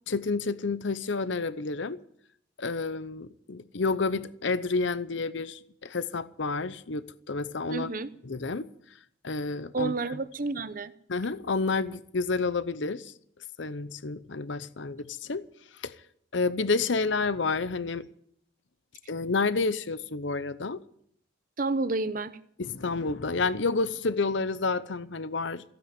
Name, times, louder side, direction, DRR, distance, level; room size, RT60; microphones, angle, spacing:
voice 1, 0.1-2.0 2.6-7.9 8.2-8.7 9.2-10.0 11.1-13.1 13.6-15.5 15.8-15.9 16.3-18.1 19.1-20.8 22.6-25.6, left 4 dB, 75° left, 0.8 m, -29 dB
voice 2, 7.7-8.1 9.7-10.9 21.6-22.4, right 3 dB, 45° right, 0.8 m, -30 dB
15.5 x 9.2 x 9.6 m
head